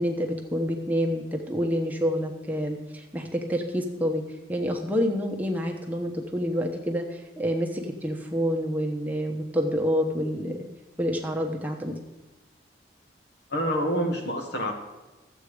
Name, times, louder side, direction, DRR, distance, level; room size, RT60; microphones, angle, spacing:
voice 1, 0.0-4.2 4.5-10.7 11.0-11.9, equal, 10° right, 1 dB, 1.0 m, -28 dB
voice 2, 13.5-14.7, equal, 60° left, 3 dB, 1.9 m, -27 dB
13.5 x 8.2 x 5.0 m, 1.2 s
head